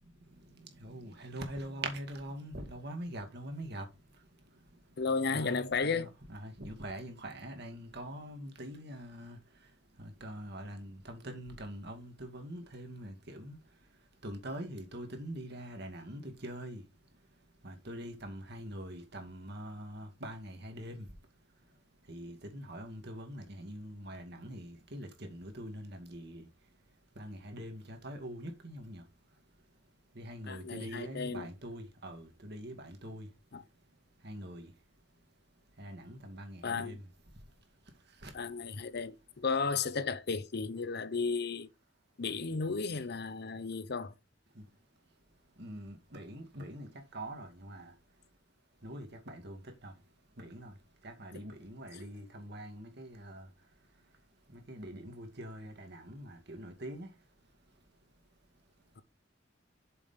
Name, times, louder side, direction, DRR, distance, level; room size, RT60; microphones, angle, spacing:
voice 1, 0.0-5.0 5.3-38.4 44.5-48.4 48.7-59.0, right 1 dB, 60° right, 2.2 m, -45 dB
voice 2, 5.0-6.1 30.5-31.5 33.5-33.6 36.6-37.0 38.3-41.7 42.2-44.1 59.0-59.1, left 4 dB, 60° left, 0.8 m, -34 dB
7.0 x 5.2 x 5.7 m
head